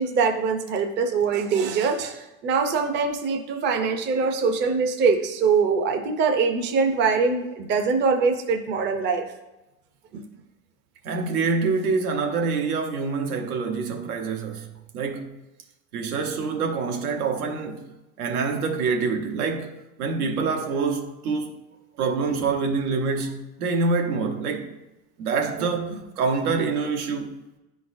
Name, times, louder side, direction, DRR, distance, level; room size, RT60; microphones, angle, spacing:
voice 1, 0.0-9.3 10.1-10.2, right 5 dB, 25° right, 0.5 m, -23 dB
voice 2, 11.0-15.4 15.9-17.9 18.2-21.6 22.0-24.7 25.2-27.3, right 4 dB, 85° right, 1.0 m, -26 dB
10.0 x 3.9 x 2.5 m
supercardioid pair, 125°, 43 cm